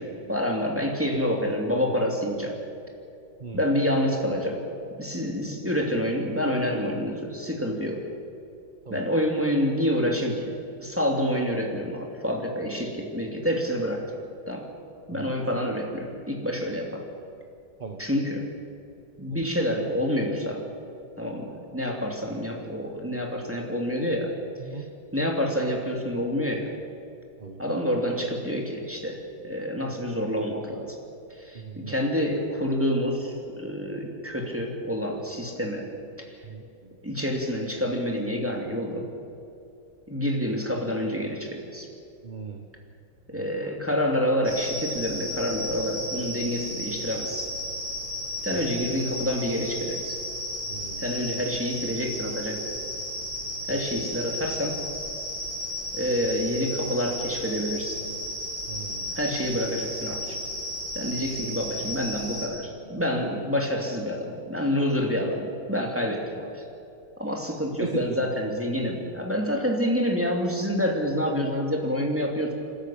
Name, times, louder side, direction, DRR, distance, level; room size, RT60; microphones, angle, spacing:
voice 1, 0.0-2.6 3.5-4.6 5.0-8.0 8.9-10.5 10.8-14.1 14.5-14.7 15.1-17.1 18.0-18.5 19.2-20.7 21.2-24.3 24.7-24.8 25.1-26.7 27.6-31.0 31.3-35.9 36.3-36.4 37.0-39.1 40.1-41.9 43.3-47.5 48.4-50.2 51.0-52.8 53.7-54.8 55.9-58.0 59.1-60.4 60.9-66.6 67.2-72.5, equal, 5° right, 1 dB, 2.7 m, -28 dB
voice 2, 31.5-31.9 36.4-36.6 42.2-42.6 43.3-43.5 48.5-48.6 50.7-51.0 53.7-53.8 58.7-59.1 67.8-68.2, right 4 dB, 30° right, 3 dB, 1.1 m, -36 dB
sound 1, 44.4-62.5, left 1 dB, 90° right, 7.0 m, -34 dB
28.0 x 13.0 x 8.8 m, 2.7 s
omnidirectional pair, 2.1 m